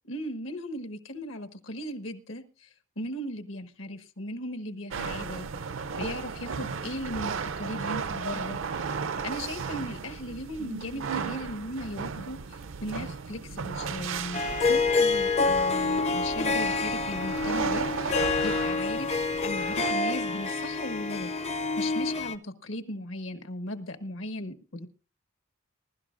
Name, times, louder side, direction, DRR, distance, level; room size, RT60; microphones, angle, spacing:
voice 1, 0.1-2.7 3.0-5.5 6.0-21.3 21.8-24.9, left 1 dB, 75° left, 9 dB, 1.3 m, -37 dB
sound 1, 4.9-19.9, right 5 dB, 70° right, 0.5 m, -35 dB
Harp, 14.3-22.3, left 3 dB, 35° left, 0.5 m, -27 dB
21.5 x 12.0 x 2.5 m, 0.32 s
head